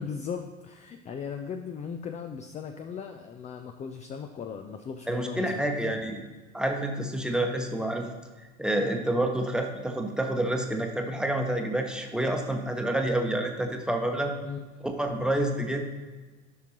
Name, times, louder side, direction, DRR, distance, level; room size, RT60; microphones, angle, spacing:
voice 1, 0.0-6.0 14.4-14.6, left 6 dB, 20° left, 5 dB, 0.5 m, -38 dB
voice 2, 5.1-6.2 6.5-8.1 8.6-14.3 15.0-15.9, right 1 dB, ahead, 3 dB, 1.0 m, -28 dB
13.0 x 5.8 x 2.9 m, 1.3 s
figure-of-eight pair, 80°, 37 cm